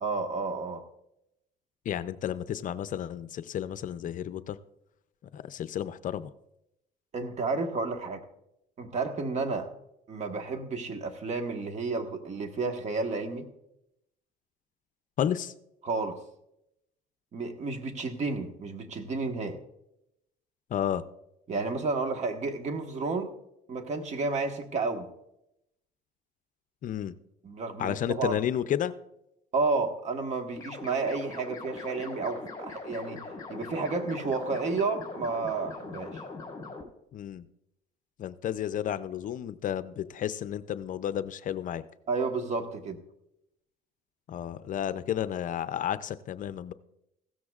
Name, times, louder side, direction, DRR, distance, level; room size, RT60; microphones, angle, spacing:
voice 1, 0.0-0.8 7.1-8.2 8.8-9.7 10.1-13.5 15.8-16.2 17.3-19.6 21.5-23.3 23.7-25.1 27.4-28.4 29.5-33.2 33.5-36.2 42.1-43.0, right 3 dB, 45° right, 6 dB, 1.5 m, -31 dB
voice 2, 1.9-4.6 5.3-6.3 15.2-15.5 20.7-21.0 26.8-27.1 27.8-28.9 37.1-37.5 38.2-41.8 44.3-46.7, left 10 dB, 50° left, 13 dB, 0.5 m, -32 dB
sound 1, 30.6-36.8, left 3 dB, 20° left, 4.2 m, -41 dB
16.0 x 13.5 x 2.4 m, 0.83 s
cardioid pair, 110°, 17 cm